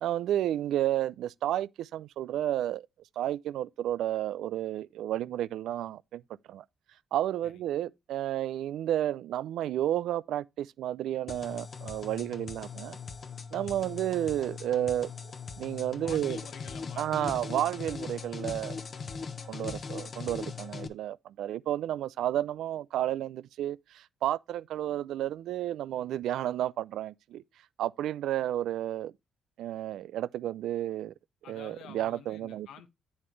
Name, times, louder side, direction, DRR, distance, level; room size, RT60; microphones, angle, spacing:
voice 1, 0.0-2.8 3.2-6.2 6.5-6.6 7.1-13.0 13.5-15.1 15.6-16.4 17.0-18.8 19.5-27.4 27.8-29.1 29.6-31.1 31.5-32.7, right 12 dB, 80° right, 0.4 m, -31 dB
sound 1, 11.3-20.9, left 5 dB, 45° left, 1.1 m, -40 dB
voice 2, 16.0-17.8 31.4-32.9, left 8 dB, 80° left, 1.3 m, -50 dB
8.6 x 7.1 x 3.2 m
cardioid pair, 90°, 0 cm